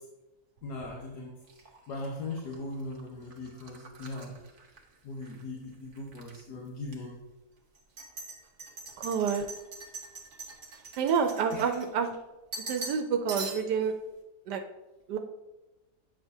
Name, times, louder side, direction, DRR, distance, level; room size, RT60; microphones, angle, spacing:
voice 1, 0.6-1.3 1.9-4.4 5.0-7.2 11.5-11.7, left 2 dB, 75° left, -3 dB, 1.6 m, -39 dB
sound 1, 1.5-5.4 5.7-6.4 6.9-7.0 7.7-12.2 12.5-13.0 13.3-13.9, right 4 dB, 40° right, 1.0 m, -43 dB
voice 2, 9.0-9.5 11.0-12.1 12.7-13.9 14.5-14.6 15.1-15.2, right 6 dB, 85° right, 6 dB, 1.2 m, -28 dB
8.5 x 6.4 x 2.7 m, 1.1 s
omnidirectional pair, 1.7 m